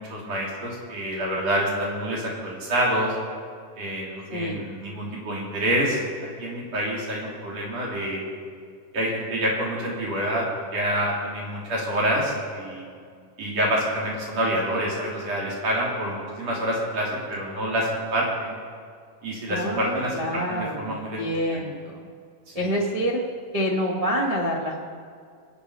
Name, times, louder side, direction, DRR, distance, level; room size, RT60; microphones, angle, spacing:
voice 1, 0.0-3.1 3.8-6.0 6.4-8.3 8.9-12.8 13.4-18.6 19.2-21.2 21.5-21.6 22.5-22.7, right 1 dB, 55° right, -4 dB, 4.2 m, -27 dB
voice 2, 4.3-4.7 19.5-22.0 22.5-23.2 23.5-24.9, equal, 75° right, -2 dB, 0.3 m, -27 dB
22.5 x 8.2 x 5.6 m, 2.2 s
omnidirectional pair, 3.6 m